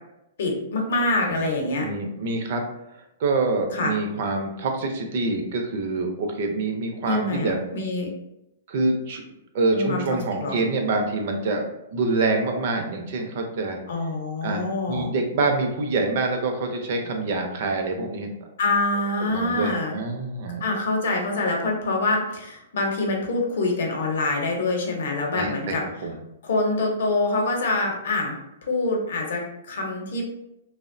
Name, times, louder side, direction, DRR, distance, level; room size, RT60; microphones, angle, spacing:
voice 1, 0.4-1.9 3.7-3.9 7.0-8.1 9.7-10.0 10.4-10.6 13.9-15.1 18.6-20.0 20.6-25.8 26.4-30.2, left 2 dB, 65° left, 1 dB, 0.7 m, -25 dB
voice 2, 1.8-2.6 2.9-7.6 8.7-9.2 9.5-11.6 11.9-13.8 14.4-18.3 19.2-20.6 25.3-25.8 26.0-26.1, right 3 dB, 50° right, 4 dB, 0.4 m, -26 dB
2.6 x 2.0 x 2.5 m, 0.85 s
hypercardioid pair, 160°, 0 cm